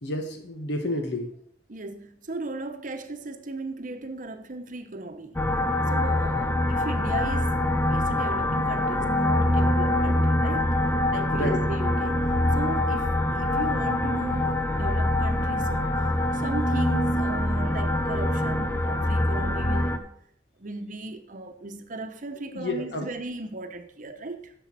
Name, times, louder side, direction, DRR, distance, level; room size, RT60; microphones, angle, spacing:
voice 1, 0.0-1.3 11.3-11.6 22.5-23.1, left 1 dB, 80° left, 1.4 m, -30 dB
voice 2, 1.7-5.4 5.9-10.8 11.1-12.3 12.5-20.1 20.6-24.5, right 2 dB, 50° right, 0.8 m, -37 dB
sound 1, 5.4-20.0, left 1 dB, 15° left, 0.6 m, -24 dB
10.5 x 7.0 x 4.1 m
head